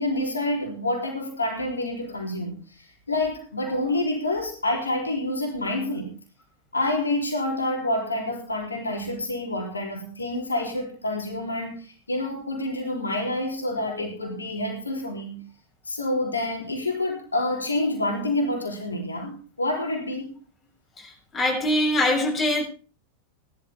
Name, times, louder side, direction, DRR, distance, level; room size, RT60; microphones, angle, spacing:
voice 1, 0.0-6.1 6.7-15.4 15.9-20.3, left 1 dB, 80° left, 3.4 m, -28 dB
voice 2, 21.0-22.6, left 1 dB, 15° left, 6.6 m, -23 dB
18.0 x 12.0 x 3.6 m
figure-of-eight pair, 90°, 0 cm